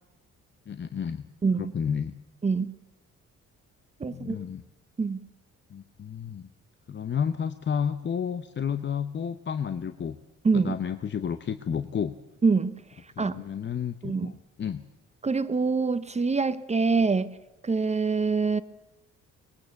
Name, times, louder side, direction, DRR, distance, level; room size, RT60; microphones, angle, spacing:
voice 1, 0.7-1.3 1.6-2.2 4.1-4.6 5.7-6.5 6.9-10.2 10.5-12.2 13.2-14.9, left 7 dB, 40° left, 12 dB, 0.8 m, -31 dB
voice 2, 1.4-1.7 2.4-2.7 4.0-4.4 5.0-5.3 10.4-10.8 12.4-12.8 13.2-13.4 14.0-14.3 15.2-17.4 17.6-18.6, right 4 dB, 20° right, 14 dB, 0.7 m, -25 dB
19.5 x 19.0 x 7.0 m, 1.0 s
cardioid pair, 90°, 30 cm